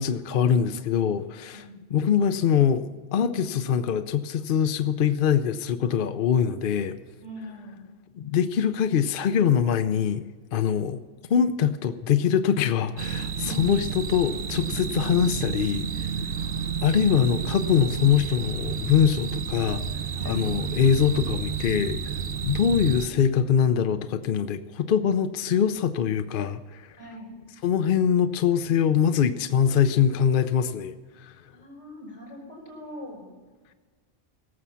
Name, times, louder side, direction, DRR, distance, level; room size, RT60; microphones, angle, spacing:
voice 1, 0.0-1.7 1.9-7.0 8.1-10.2 10.5-11.0 11.3-16.1 16.8-19.8 20.2-22.1 22.4-27.0 27.6-31.3, left 8 dB, 60° left, 10 dB, 0.7 m, -23 dB
voice 2, 7.2-7.8 10.7-10.8 13.4-13.9 16.3-16.8 20.2-20.5 22.4-23.4 27.0-27.3 31.5-33.3, left 1 dB, 80° left, -1 dB, 5.0 m, -43 dB
sound 1, 13.0-23.1, right 7 dB, 60° right, 0.9 m, -31 dB
17.5 x 7.3 x 5.6 m, 1.4 s
omnidirectional pair, 1.2 m